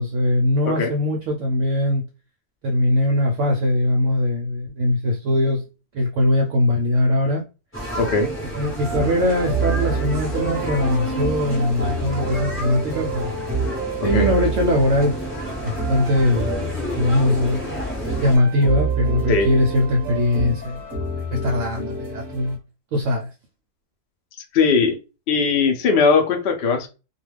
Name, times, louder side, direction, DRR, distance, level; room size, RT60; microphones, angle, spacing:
voice 1, 0.0-2.0 2.6-5.6 5.9-7.4 8.5-13.3 14.0-15.1 15.6-16.5 17.0-17.7 18.2-20.9 21.3-22.6 22.9-23.3, left 1 dB, 70° right, 0.8 m, -21 dB
sound 1, 7.7-18.4, equal, 10° left, 0.7 m, -30 dB
voice 2, 8.0-8.3 14.0-14.3 19.3-19.5 24.5-25.0 25.3-26.9, left 4 dB, 65° left, 0.6 m, -19 dB
sound 2, 8.8-22.6, right 3 dB, 20° right, 0.8 m, -28 dB
2.3 x 2.3 x 3.2 m
omnidirectional pair, 1.6 m